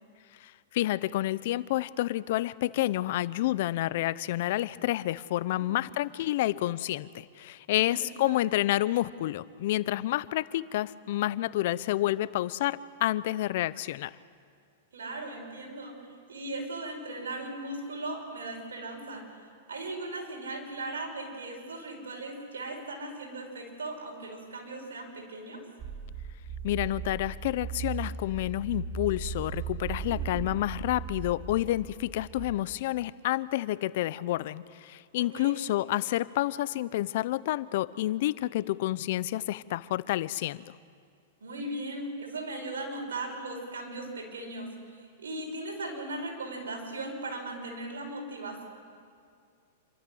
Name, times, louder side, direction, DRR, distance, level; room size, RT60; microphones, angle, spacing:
voice 1, 0.4-14.1 26.6-40.6, left 15 dB, 60° left, 18 dB, 0.6 m, -29 dB
voice 2, 7.7-8.4 14.9-16.0 16.3-19.2 19.7-25.6 30.0-30.5 35.2-35.6 41.4-48.6, right 2 dB, 90° right, 1 dB, 5.7 m, -38 dB
sound 1, 25.8-32.5, right 6 dB, 30° right, 1.6 m, -38 dB
27.5 x 13.5 x 7.8 m, 2.2 s
hypercardioid pair, 130°, 0 cm